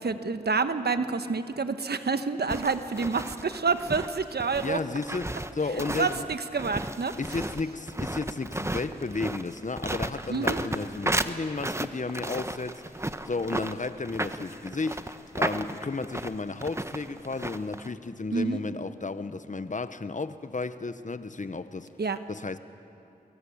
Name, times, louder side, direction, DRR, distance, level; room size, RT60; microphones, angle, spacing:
voice 1, 0.0-4.8 6.0-7.2 10.3-10.6 18.3-18.6 22.0-22.2, right 4 dB, 70° right, 10 dB, 1.3 m, -28 dB
sound 1, 2.5-17.9, right 1 dB, 15° right, 1.1 m, -33 dB
voice 2, 4.6-6.3 7.2-21.9 22.3-22.6, left 3 dB, 50° left, 12 dB, 1.1 m, -33 dB
23.5 x 22.0 x 8.7 m, 2.7 s
cardioid pair, 40°, 17 cm